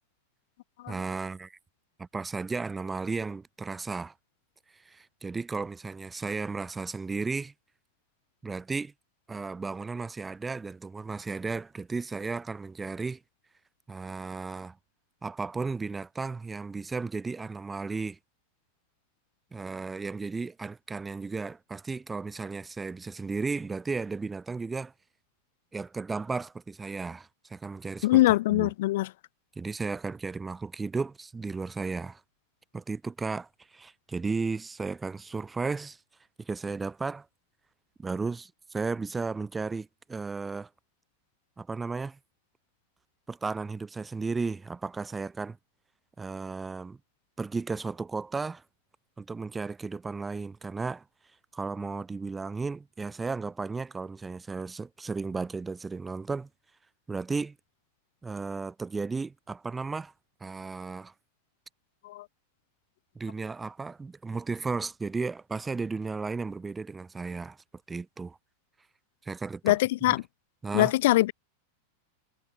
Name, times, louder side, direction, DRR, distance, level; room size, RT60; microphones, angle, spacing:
voice 1, 0.9-1.6 2.0-4.1 4.7-7.5 8.4-8.9 9.3-13.2 13.9-14.8 15.2-18.2 19.5-24.9 25.7-28.7 29.6-32.2 32.7-36.0 36.4-37.3 38.0-40.7 41.6-42.2 43.3-45.6 46.2-47.0 47.4-48.6 49.2-51.0 51.5-56.5 57.1-57.6 58.2-60.1 60.4-61.1 63.2-67.6 67.9-68.4 69.2-69.8 70.1-70.2 70.6-70.9, right 4 dB, 10° right, 0.6 m, -34 dB
voice 2, 28.0-29.1 62.0-62.2 69.6-70.2 70.7-71.3, left 17 dB, 55° left, 0.3 m, -23 dB
figure-of-eight pair, 90°, 0 cm